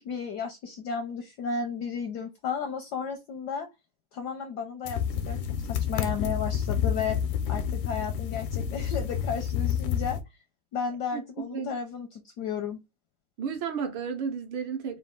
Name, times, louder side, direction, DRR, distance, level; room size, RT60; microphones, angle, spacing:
voice 1, 0.0-3.7 4.1-7.2 7.5-10.2 10.7-12.8, left 6 dB, 75° left, 0.9 m, -33 dB
sound 1, 4.9-10.2, left 8 dB, 90° left, 1.6 m, -29 dB
voice 2, 11.1-11.7 13.4-15.0, right 6 dB, 70° right, 1.6 m, -33 dB
4.1 x 2.4 x 3.6 m
omnidirectional pair, 2.4 m